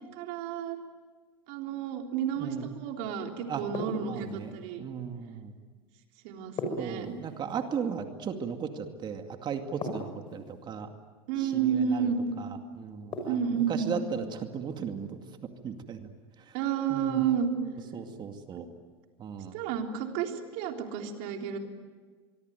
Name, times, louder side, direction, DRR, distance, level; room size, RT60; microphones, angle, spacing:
voice 1, 0.1-0.8 1.5-4.8 6.2-7.1 11.3-12.3 13.2-13.9 16.5-17.5 19.5-21.6, right 8 dB, 65° right, 3 dB, 3.6 m, -31 dB
sound 1, 3.7-4.5 6.6-7.6 9.8-10.6 13.1-13.8, left 1 dB, 40° left, 6.5 m, -37 dB
voice 2, 4.0-4.5 4.8-5.5 6.8-10.9 11.4-12.1 12.4-12.5 12.7-16.1 16.5-16.6 16.9-17.2 17.9-18.7 19.2-19.6, right 7 dB, 35° right, 6 dB, 2.3 m, -36 dB
24.0 x 24.0 x 9.4 m, 1.5 s
supercardioid pair, 110°, 13 cm